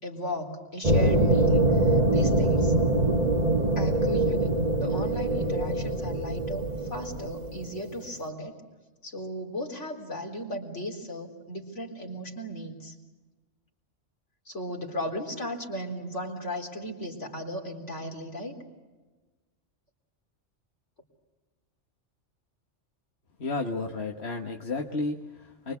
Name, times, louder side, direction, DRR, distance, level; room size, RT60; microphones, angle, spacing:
voice 1, 0.0-2.8 3.8-8.6 9.0-12.9 14.5-18.6, equal, 80° left, 1 dB, 4.2 m, -36 dB
sound 1, 0.8-7.8 8.1-8.2, right 1 dB, 35° right, 1.9 m, -24 dB
voice 2, 23.4-25.7, left 3 dB, 60° left, 2 dB, 1.7 m, -32 dB
24.5 x 23.5 x 8.3 m, 1.2 s
omnidirectional pair, 1.2 m